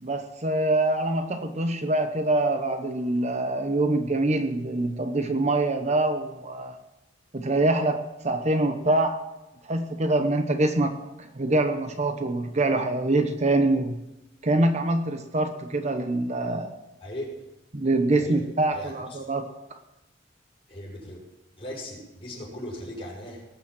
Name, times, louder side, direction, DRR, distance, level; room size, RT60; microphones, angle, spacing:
voice 1, 0.0-6.8 7.3-9.2 9.6-10.9 11.2-14.0 14.4-16.7 17.7-19.5, right 2 dB, 35° right, 7 dB, 0.9 m, -25 dB
voice 2, 18.7-19.3 20.7-21.2 21.6-23.5, left 1 dB, 30° left, -3 dB, 5.9 m, -38 dB
19.0 x 7.2 x 7.5 m, 1.0 s
head